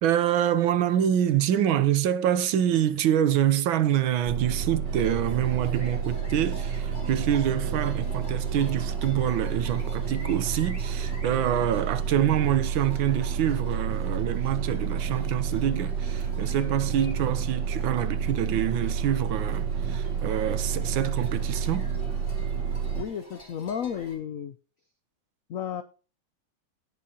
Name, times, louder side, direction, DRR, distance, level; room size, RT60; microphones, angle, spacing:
voice 1, 0.0-21.9, right 10 dB, 75° right, 1.6 m, -26 dB
sound 1, 4.2-23.0, right 7 dB, 60° right, 2.1 m, -30 dB
sound 2, 4.8-24.2, right 1 dB, 35° left, 3.7 m, -48 dB
voice 2, 22.9-24.6 25.5-25.8, left 8 dB, 80° left, 0.7 m, -33 dB
18.0 x 7.3 x 2.9 m
omnidirectional pair, 2.2 m